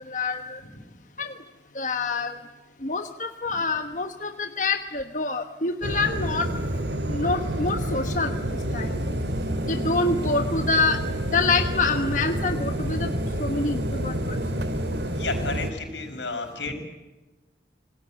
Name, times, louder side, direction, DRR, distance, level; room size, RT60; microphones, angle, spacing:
voice 1, 0.1-0.6 1.2-1.3 1.7-2.3 2.8-6.5 7.1-8.4 8.7-8.9 9.7-11.0 11.3-13.1 13.4-14.4, left 3 dB, 45° left, 7 dB, 1.2 m, -26 dB
sound 1, 5.8-15.7, equal, 70° right, 2.3 m, -28 dB
voice 2, 15.1-16.7, left 3 dB, 85° left, 6 dB, 5.6 m, -31 dB
27.0 x 20.0 x 8.8 m, 1.2 s
head